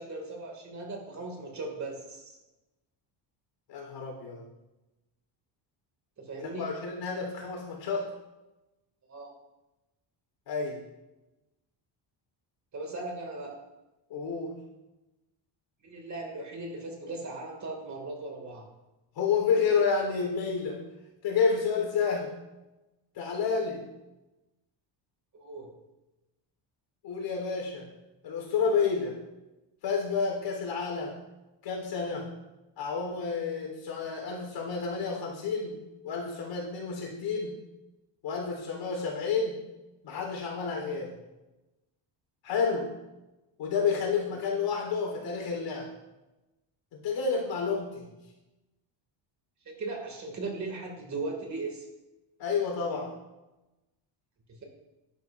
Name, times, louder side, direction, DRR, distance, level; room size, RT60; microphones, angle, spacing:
voice 1, 0.0-2.4 6.2-6.7 9.1-9.3 12.7-13.5 15.8-18.7 25.3-25.7 49.6-51.8 54.5-54.6, right 3 dB, 35° right, 1 dB, 2.3 m, -38 dB
voice 2, 3.7-4.4 6.5-8.1 10.5-10.8 14.1-14.6 19.2-20.8 21.2-22.3 23.1-23.8 27.0-27.9 28.2-29.2 29.8-31.2 31.6-32.3 32.8-35.8 36.0-37.6 38.2-39.6 40.0-41.2 42.4-42.9 43.6-45.9 46.9-48.1 52.4-53.1, left 5 dB, 65° left, -1 dB, 3.8 m, -30 dB
11.0 x 11.0 x 2.6 m, 1.0 s
cardioid pair, 135°, 47 cm